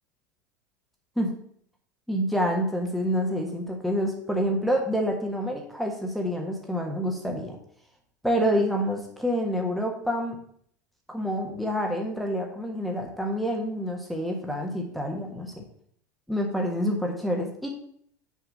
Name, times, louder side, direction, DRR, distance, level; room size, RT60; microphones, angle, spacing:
voice 1, 2.1-7.6 8.2-10.4 11.1-15.6 16.3-17.7, equal, ahead, 1 dB, 1.5 m, -27 dB
6.5 x 4.9 x 6.4 m, 0.64 s
figure-of-eight pair, 80°, 10 cm